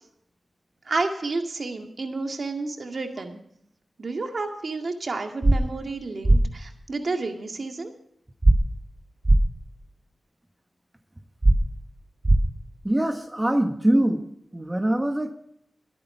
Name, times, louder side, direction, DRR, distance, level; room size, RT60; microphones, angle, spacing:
voice 1, 0.9-3.4 4.0-7.9, right 3 dB, 60° right, 5 dB, 2.0 m, -30 dB
sound 1, 5.4-5.6 6.2-6.4 8.4-8.6 9.2-9.4 11.4-11.6 12.2-12.4, right 1 dB, 35° right, 1.4 m, -16 dB
voice 2, 12.8-14.2 14.5-15.4, right 1 dB, 20° right, 6 dB, 1.4 m, -23 dB
21.5 x 8.8 x 4.4 m, 0.72 s
cardioid pair, 55°, 0 cm